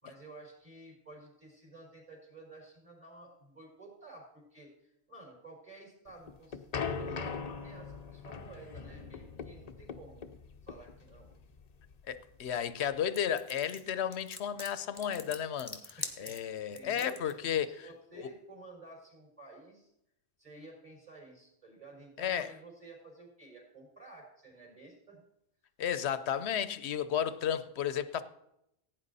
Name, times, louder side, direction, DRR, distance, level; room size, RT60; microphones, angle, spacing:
voice 1, 0.0-10.3 10.6-11.3 16.0-19.9 20.4-25.2, right 2 dB, 30° right, 4.8 m, -53 dB
sound 1, 6.1-12.9, left 5 dB, 40° left, 0.7 m, -41 dB
voice 2, 12.1-17.7 22.2-22.5 25.8-28.2, left 9 dB, 75° left, 1.0 m, -33 dB
sound 2, 13.1-17.3, left 1 dB, 10° left, 1.3 m, -43 dB
16.5 x 9.3 x 4.1 m
omnidirectional pair, 1.1 m